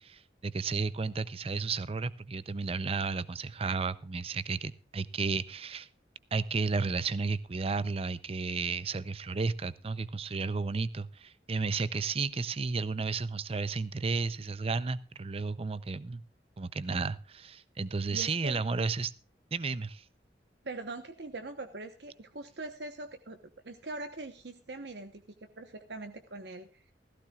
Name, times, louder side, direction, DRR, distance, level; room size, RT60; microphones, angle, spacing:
voice 1, 0.0-5.9 6.3-16.2 16.6-19.1 19.5-20.0, right 4 dB, 35° right, 17 dB, 0.5 m, -33 dB
voice 2, 18.1-18.6 20.6-26.9, right 2 dB, 70° right, 7 dB, 1.1 m, -42 dB
16.5 x 14.5 x 2.4 m, 0.35 s
head